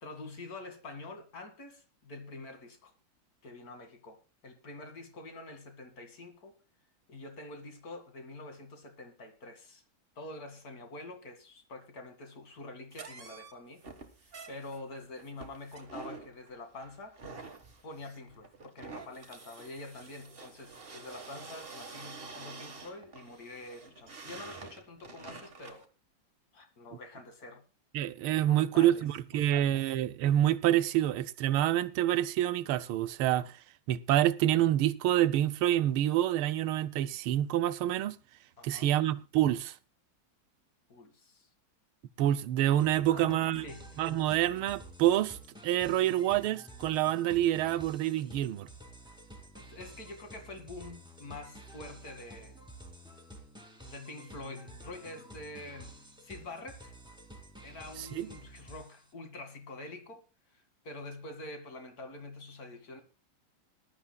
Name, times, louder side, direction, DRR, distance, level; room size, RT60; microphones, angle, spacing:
voice 1, 0.0-2.9 3.4-6.6 7.1-9.8 10.2-13.8 14.5-17.2 17.8-25.9 26.5-27.6 28.5-29.0 29.3-29.7 38.6-38.9 40.9-41.5 43.1-44.0 49.5-52.6 53.9-56.9 57.6-60.2 60.5-63.0, left 2 dB, 45° left, 2.6 m, -46 dB
sound 1, 12.9-25.9, right 4 dB, 30° right, 1.5 m, -48 dB
voice 2, 27.9-33.5 33.9-38.2 38.6-39.7 42.2-43.7 44.0-45.4 45.6-48.7 58.2-58.3, right 12 dB, 85° right, 1.6 m, -27 dB
sound 2, 42.8-59.1, right 1 dB, ahead, 2.3 m, -51 dB
21.0 x 11.5 x 2.3 m
omnidirectional pair, 2.3 m